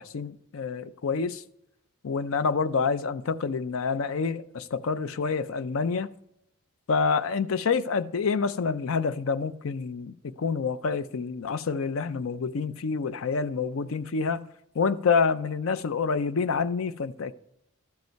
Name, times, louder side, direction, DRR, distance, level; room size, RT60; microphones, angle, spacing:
voice 1, 0.0-1.4 2.0-6.1 6.9-14.4 14.7-17.3, left 5 dB, 65° left, 0.5 m, -27 dB
13.0 x 5.4 x 4.6 m
head